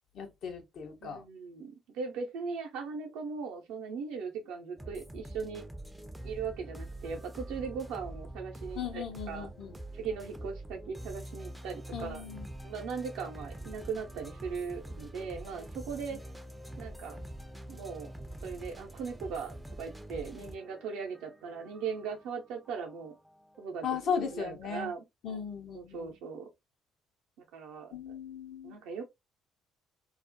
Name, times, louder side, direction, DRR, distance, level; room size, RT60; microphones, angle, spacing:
voice 1, 0.1-1.2 8.7-9.8 11.9-12.5 23.8-24.9 25.2-26.2 27.9-28.8, left 6 dB, 60° left, 0.7 m, -37 dB
voice 2, 1.0-5.6 6.2-9.5 9.9-12.2 12.6-16.2 16.8-17.2 17.7-18.1 18.4-23.2 23.6-25.0 25.7-26.5 27.4-27.9 28.6-29.0, right 5 dB, 70° right, 0.6 m, -39 dB
sound 1, 4.8-24.5, right 1 dB, 5° right, 0.5 m, -46 dB
2.3 x 2.1 x 2.6 m
hypercardioid pair, 50°, 0 cm